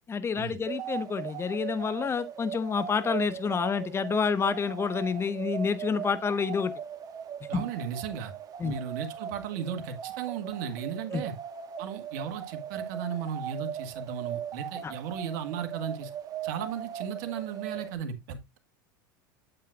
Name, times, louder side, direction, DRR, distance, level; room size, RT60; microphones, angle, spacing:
voice 1, 0.1-6.7 7.5-7.6 8.6-8.7 11.1-11.2 14.8-14.9, left 5 dB, 25° left, 1.0 m, -28 dB
sound 1, 0.7-18.0, right 8 dB, 35° right, 1.4 m, -39 dB
voice 2, 7.5-8.3 8.6-11.3 11.8-16.1 16.4-18.6, right 7 dB, 65° right, 1.7 m, -35 dB
8.7 x 7.8 x 2.4 m
hypercardioid pair, 100°, 11 cm